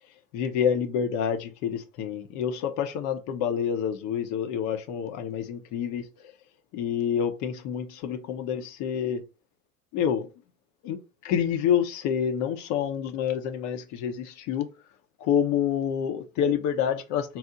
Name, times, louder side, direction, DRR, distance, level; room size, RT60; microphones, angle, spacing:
voice 1, 0.3-6.3 6.7-9.2 9.9-10.3 10.8-14.7 15.2-17.4, left 8 dB, 40° left, 0.7 m, -28 dB
4.3 x 2.1 x 3.8 m
hypercardioid pair, 95°, 47 cm